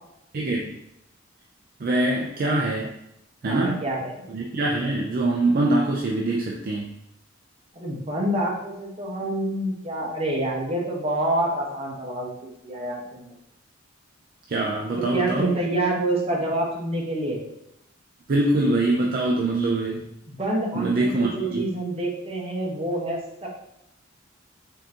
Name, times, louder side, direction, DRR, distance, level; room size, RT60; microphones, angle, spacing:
voice 1, 0.3-0.8 1.8-2.9 3.4-3.8 4.3-6.9 14.5-15.5 18.3-20.1 20.7-21.6, right 2 dB, 45° right, -1 dB, 0.4 m, -24 dB
voice 2, 3.4-4.2 7.7-13.3 15.0-17.4 20.3-23.5, right 1 dB, 30° right, -2 dB, 0.9 m, -27 dB
3.7 x 2.8 x 3.6 m, 0.85 s
head